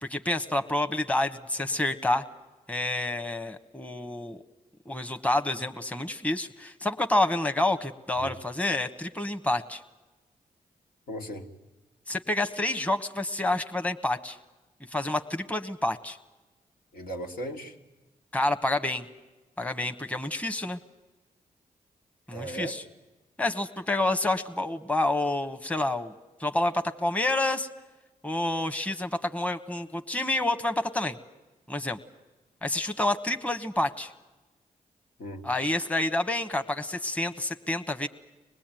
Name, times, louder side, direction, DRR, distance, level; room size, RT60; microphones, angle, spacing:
voice 1, 0.0-2.2 2.7-4.4 4.9-9.8 12.1-14.4 14.9-16.2 18.3-19.0 19.6-20.8 22.3-22.8 23.4-26.1 26.4-27.7 28.2-31.2 31.7-32.0 32.6-34.1 35.4-38.1, left 2 dB, 10° left, 7 dB, 1.2 m, -28 dB
voice 2, 11.1-11.5 16.9-17.8 22.3-22.8 35.2-35.5, right 1 dB, 75° left, 0 dB, 2.2 m, -37 dB
25.0 x 19.5 x 9.1 m, 1.1 s
supercardioid pair, 50°, 16 cm